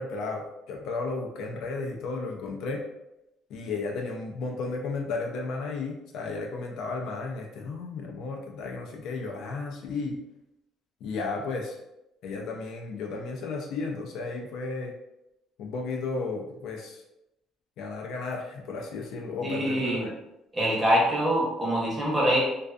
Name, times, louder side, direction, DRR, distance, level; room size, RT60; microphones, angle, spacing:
voice 1, 0.0-2.8 3.5-10.2 11.0-11.8 12.2-14.9 15.6-17.0 17.8-20.1, left 3 dB, 65° left, 1 dB, 0.4 m, -34 dB
voice 2, 19.4-20.1 20.5-22.4, equal, 15° right, -5 dB, 0.8 m, -24 dB
2.4 x 2.3 x 2.3 m, 0.87 s
cardioid pair, 155°, 0 cm